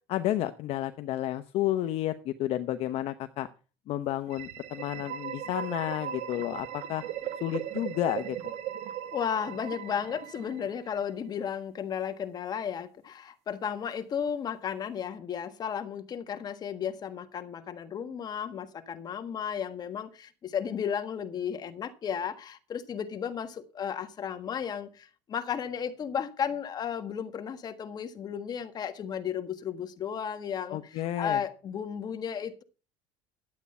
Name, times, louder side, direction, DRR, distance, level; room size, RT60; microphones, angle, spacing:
voice 1, 0.1-3.5 3.9-7.0 7.4-8.5 30.7-31.4, left 13 dB, 55° left, 0.8 m, -31 dB
sound 1, 4.3-11.0, right 11 dB, 60° right, 1.4 m, -38 dB
voice 2, 9.1-32.6, left 8 dB, 35° left, 1.5 m, -34 dB
12.0 x 8.4 x 5.4 m
cardioid pair, 130°, 12 cm